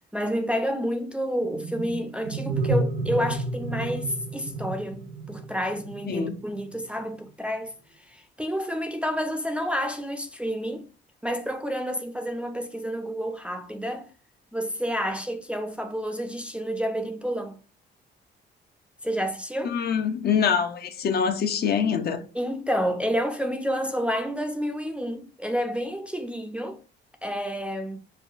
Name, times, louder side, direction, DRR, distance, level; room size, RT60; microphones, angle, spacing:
voice 1, 0.1-7.7 8.1-10.8 11.2-14.1 14.5-17.5 19.0-19.7 22.3-26.8 27.2-28.0, equal, 5° right, 0.4 m, -29 dB
sound 1, 1.4-6.8, right 2 dB, 65° right, 0.7 m, -31 dB
voice 2, 6.0-6.4 19.6-22.2, left 7 dB, 55° left, 0.5 m, -25 dB
4.7 x 2.1 x 2.4 m
cardioid pair, 90°, 20 cm